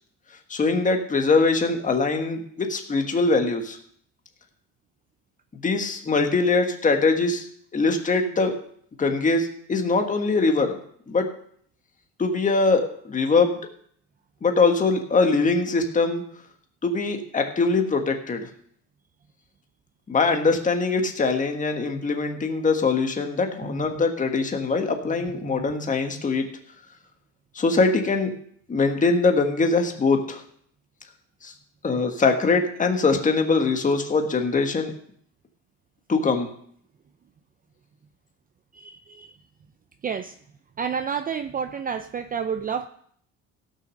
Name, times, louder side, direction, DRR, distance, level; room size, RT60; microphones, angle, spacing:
voice 1, 0.5-3.8 5.6-7.4 7.7-8.6 9.0-10.8 11.1-11.3 12.2-13.6 14.4-16.2 16.8-18.5 20.1-26.4 27.5-28.3 28.7-30.4 31.4-31.5 31.8-34.9 36.1-36.5, left 3 dB, 25° left, 4 dB, 1.6 m, -22 dB
voice 2, 23.6-24.0 25.4-25.7 38.7-39.3 40.0-40.3 40.8-42.9, right 7 dB, 25° right, 8 dB, 0.5 m, -30 dB
16.0 x 6.3 x 6.4 m, 0.64 s
cardioid pair, 135°, 33 cm